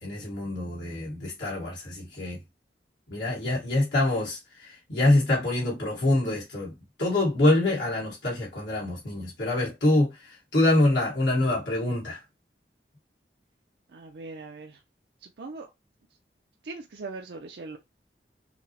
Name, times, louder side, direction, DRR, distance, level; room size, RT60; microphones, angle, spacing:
voice 1, 0.0-2.4 3.1-6.7 7.0-12.2, left 2 dB, 80° left, 1.5 m, -25 dB
voice 2, 13.9-14.8 15.2-15.7 16.6-17.8, right 3 dB, 65° right, 0.5 m, -40 dB
5.7 x 2.0 x 2.8 m
head